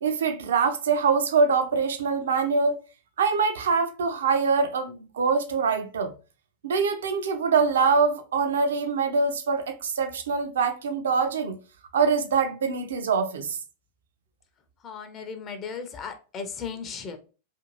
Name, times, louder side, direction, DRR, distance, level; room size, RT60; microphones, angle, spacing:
voice 1, 0.0-2.7 3.2-6.1 6.6-11.6 11.9-13.6, right 5 dB, 65° right, 0.4 m, -24 dB
voice 2, 14.8-17.2, left 6 dB, 30° left, 0.5 m, -36 dB
2.5 x 2.4 x 2.9 m
figure-of-eight pair, 90°, 0 cm